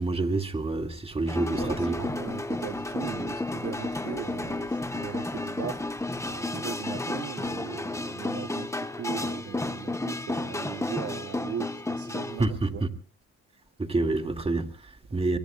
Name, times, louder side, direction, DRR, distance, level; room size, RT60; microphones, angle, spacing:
voice 1, 0.0-2.1 12.4-12.9 13.8-15.4, right 2 dB, 20° right, 2.0 m, -28 dB
sound 1, 1.3-12.5, left 2 dB, 10° left, 1.1 m, -32 dB
voice 2, 1.5-5.8 6.2-12.8 15.3-15.4, right 9 dB, 50° right, 0.8 m, -39 dB
24.0 x 23.0 x 2.3 m
cardioid pair, 90°, 30 cm